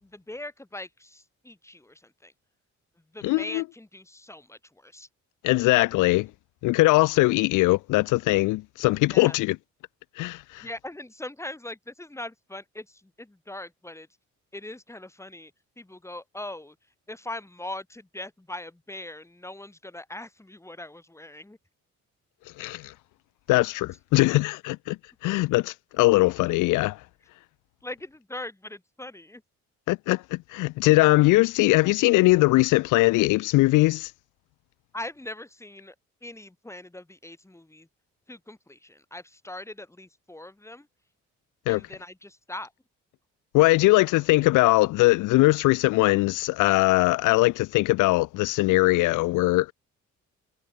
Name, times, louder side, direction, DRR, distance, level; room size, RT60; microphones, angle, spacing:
voice 1, 0.0-2.3 3.1-5.1 9.1-9.4 10.6-14.1 14.5-15.5 15.8-16.8 17.1-21.6 27.8-29.4 34.9-35.9 36.2-37.9 38.3-40.9 41.7-42.7, left 1 dB, 10° left, 3.1 m, -41 dB
voice 2, 3.2-3.6 5.4-6.3 6.6-9.6 10.2-10.7 22.6-22.9 23.5-25.0 25.2-27.0 29.9-34.1 41.7-41.8 43.5-49.7, left 20 dB, 85° left, 0.5 m, -21 dB
cardioid pair, 90°, 30 cm